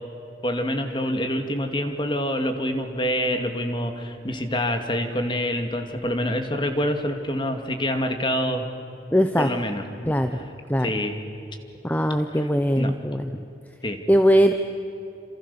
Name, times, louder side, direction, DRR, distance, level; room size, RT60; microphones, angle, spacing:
voice 1, 0.4-8.7 9.4-10.5 10.8-11.2 12.3-12.5 12.8-12.9 13.8-14.0, equal, 25° left, 5 dB, 2.4 m, -26 dB
voice 2, 9.1-9.5 10.1-10.3 10.7-10.9 11.8-13.3 14.1-14.5, equal, 10° left, 7 dB, 0.8 m, -20 dB
28.5 x 27.0 x 7.1 m, 2.8 s
head